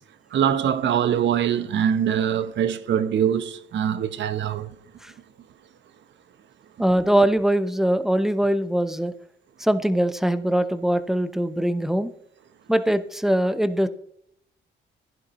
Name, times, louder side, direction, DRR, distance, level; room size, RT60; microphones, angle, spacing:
voice 1, 0.3-4.7, right 9 dB, 65° right, 1.0 m, -23 dB
voice 2, 6.8-9.1 9.6-12.1 12.7-13.9, right 1 dB, ahead, 0.8 m, -22 dB
15.5 x 11.0 x 3.0 m
cardioid pair, 90°, 20 cm